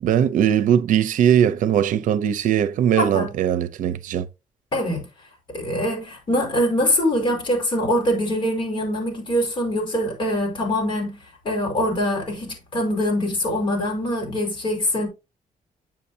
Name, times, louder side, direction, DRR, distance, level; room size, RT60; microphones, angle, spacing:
voice 1, 0.0-4.3, right 9 dB, 75° right, 0.7 m, -20 dB
voice 2, 3.0-3.3 4.7-5.1 5.5-11.2 11.5-15.1, equal, 35° left, 5.2 m, -23 dB
9.8 x 7.5 x 2.8 m
cardioid pair, 170°, 14 cm